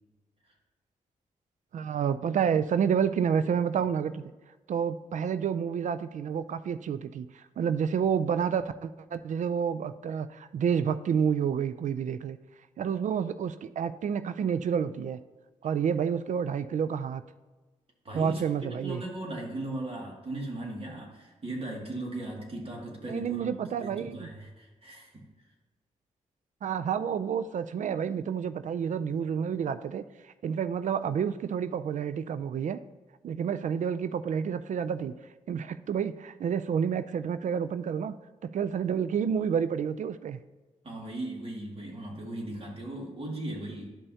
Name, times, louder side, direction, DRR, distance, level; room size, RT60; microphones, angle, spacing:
voice 1, 1.7-4.2 4.7-12.4 12.8-15.2 15.6-17.2 18.1-19.0 23.1-24.3 26.6-32.8 33.2-35.1 35.5-38.2 38.4-40.4, right 7 dB, 60° right, 13 dB, 0.4 m, -29 dB
voice 2, 18.0-18.4 18.8-23.5 23.8-25.3 40.8-43.9, right 1 dB, 45° right, -1 dB, 2.2 m, -37 dB
11.5 x 5.5 x 2.8 m, 1.2 s
cardioid pair, 60°, 14 cm